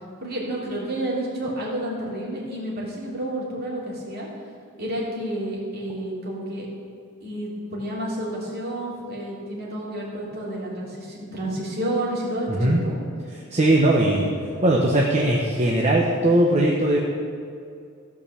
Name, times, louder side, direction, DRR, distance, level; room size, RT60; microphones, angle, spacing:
voice 1, 0.2-4.3 4.8-6.7 7.2-13.0, right 1 dB, 50° right, -5 dB, 3.0 m, -30 dB
voice 2, 13.5-14.3 14.6-17.0, right 1 dB, 35° right, -2 dB, 1.0 m, -19 dB
15.0 x 5.4 x 6.8 m, 2.4 s
head